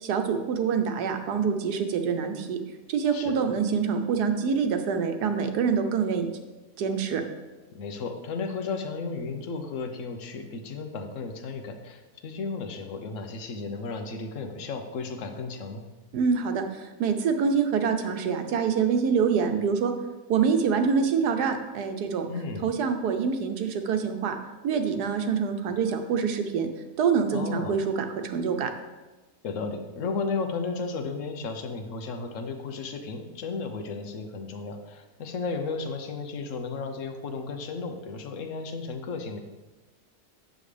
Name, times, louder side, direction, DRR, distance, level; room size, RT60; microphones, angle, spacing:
voice 1, 0.0-2.6 2.9-6.3 6.8-7.2 16.1-19.9 20.3-22.3 22.6-24.4 24.6-26.7 27.0-28.7, right 6 dB, 85° right, 6 dB, 1.4 m, -25 dB
voice 2, 7.7-15.8 22.3-22.7 27.3-27.8 29.4-39.4, left 4 dB, 60° left, 6 dB, 1.1 m, -34 dB
9.1 x 7.3 x 3.3 m, 1.2 s
omnidirectional pair, 1.7 m